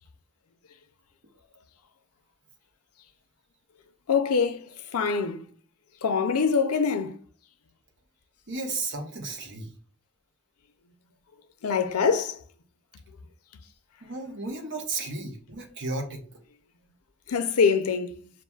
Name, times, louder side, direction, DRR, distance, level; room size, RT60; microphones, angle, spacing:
voice 1, 4.1-5.5 6.0-7.1 11.6-12.4 17.3-18.1, left 5 dB, 85° left, 0.5 m, -24 dB
voice 2, 8.5-9.7 14.0-16.2, right 3 dB, 55° right, 0.9 m, -33 dB
6.9 x 2.5 x 2.3 m
head